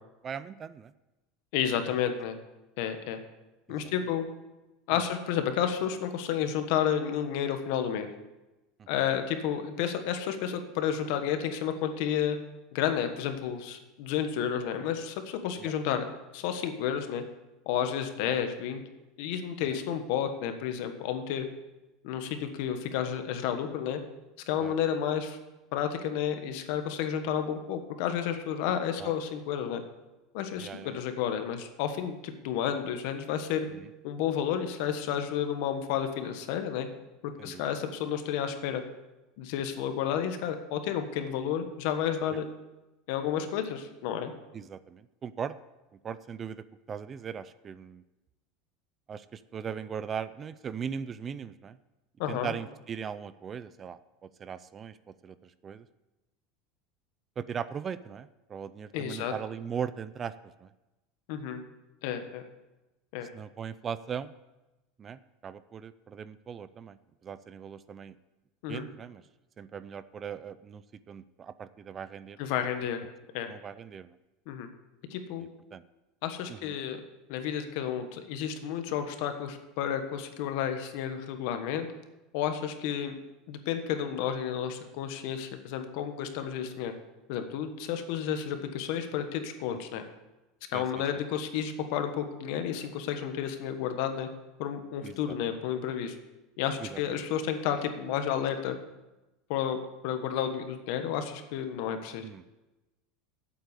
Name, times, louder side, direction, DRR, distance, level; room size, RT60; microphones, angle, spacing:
voice 1, 0.2-0.9 3.8-3.9 8.8-8.9 15.6-15.7 18.3-18.4 24.6-24.7 29.0-29.1 30.6-31.0 33.7-33.9 37.4-37.6 44.5-45.6 46.0-48.0 49.1-51.8 52.3-55.0 55.2-55.8 57.4-60.3 60.6-60.7 63.3-64.3 65.0-67.0 67.2-68.1 68.7-69.2 69.6-72.4 73.5-74.1 75.7-75.8 76.5-76.7 90.7-90.8 95.0-95.4 96.8-97.0 102.2-102.4, right 7 dB, 20° right, 15 dB, 0.3 m, -39 dB
voice 2, 1.5-2.4 2.8-3.2 3.7-4.2 4.9-8.1 8.9-12.4 12.7-16.0 16.3-17.2 17.7-18.8 19.2-21.5 22.0-24.0 24.5-25.4 25.7-29.8 30.3-33.7 34.0-36.9 37.2-38.8 39.4-42.4 43.1-44.3 52.2-52.5 58.9-59.3 61.3-61.6 62.0-62.4 63.1-63.3 68.6-68.9 72.4-73.0 73.3-73.5 74.5-74.7 75.1-75.4 76.2-77.0 77.3-81.9 82.3-83.1 83.5-86.9 87.3-90.0 90.7-94.3 94.6-96.1 96.6-98.8 99.5-99.8 100.0-102.2, left 9 dB, 60° left, 7 dB, 1.3 m, -31 dB
8.4 x 8.0 x 8.2 m, 1.0 s
supercardioid pair, 160°, 0 cm